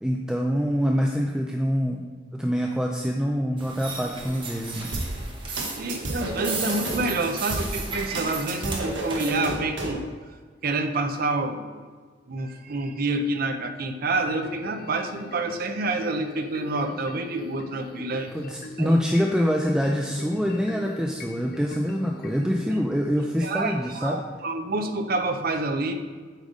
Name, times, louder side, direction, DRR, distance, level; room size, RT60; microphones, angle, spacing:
voice 1, 0.0-2.1 2.3-4.9 18.3-24.2, equal, 5° right, 0 dB, 0.4 m, -25 dB
sound 1, 3.6-9.3, right 4 dB, 30° right, 1.1 m, -35 dB
sound 2, 4.9-7.0 7.5-10.0, right 2 dB, 80° right, 1.2 m, -31 dB
voice 2, 5.5-10.3 10.6-11.8 12.3-18.3 18.8-18.9 23.4-25.9, right 2 dB, 55° right, 7 dB, 0.6 m, -28 dB
sound 3, 14.3-22.6, left 3 dB, 55° left, 0.6 m, -42 dB
8.2 x 3.9 x 5.1 m, 1.5 s
head